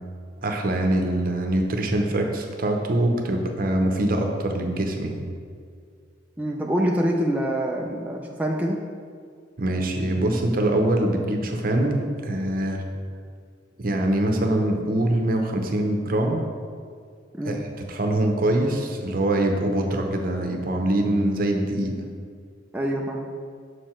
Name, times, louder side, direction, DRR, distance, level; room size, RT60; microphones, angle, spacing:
voice 1, 0.4-5.2 9.6-12.8 13.8-16.4 17.4-17.6 17.9-22.0, right 1 dB, 50° right, 3 dB, 0.7 m, -23 dB
voice 2, 6.4-8.8 17.4-17.6 22.7-23.3, equal, 10° right, -1 dB, 0.4 m, -25 dB
6.4 x 4.8 x 4.4 m, 2.1 s
head